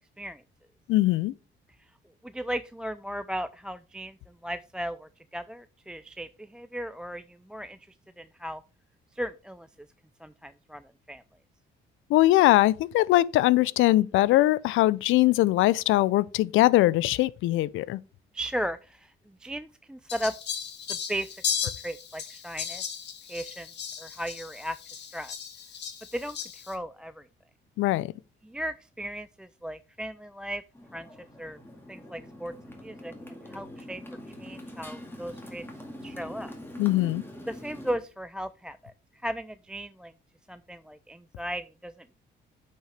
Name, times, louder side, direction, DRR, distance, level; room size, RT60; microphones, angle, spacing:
voice 1, 0.9-1.3 12.1-18.0 27.8-28.1 36.8-37.2, left 16 dB, 85° left, 0.4 m, -21 dB
voice 2, 2.2-4.2 4.4-7.8 8.2-8.6 9.2-9.7 10.2-10.8 11.1-11.2 18.3-19.1 19.4-20.3 20.9-21.3 21.6-22.8 23.3-23.7 24.0-25.3 26.1-27.2 28.4-30.6 30.9-31.1 31.4-31.6 31.9-32.5 32.8-33.1 33.5-34.0 34.4-35.6 36.0-36.5 37.5-38.9 39.2-40.1 40.5-42.1, equal, 5° right, 0.3 m, -36 dB
Fowl, 20.1-26.7, left 8 dB, 60° left, 1.5 m, -36 dB
Motorcycle, 30.7-38.0, left 1 dB, 10° left, 2.1 m, -43 dB
8.7 x 5.4 x 3.3 m
cardioid pair, 90°, 20 cm